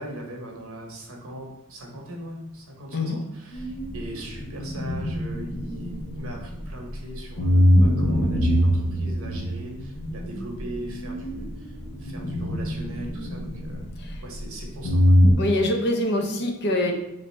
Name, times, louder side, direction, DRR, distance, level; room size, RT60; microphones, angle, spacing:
voice 1, 0.0-11.7 12.0-13.8 14.2-15.2, right 1 dB, 65° right, 0 dB, 0.9 m, -39 dB
sound 1, 3.5-7.0 7.4-14.6 14.8-15.3, equal, 85° left, 0.8 m, -23 dB
voice 2, 15.4-16.9, left 1 dB, 50° left, 2 dB, 0.6 m, -24 dB
3.3 x 2.6 x 4.2 m, 0.87 s
head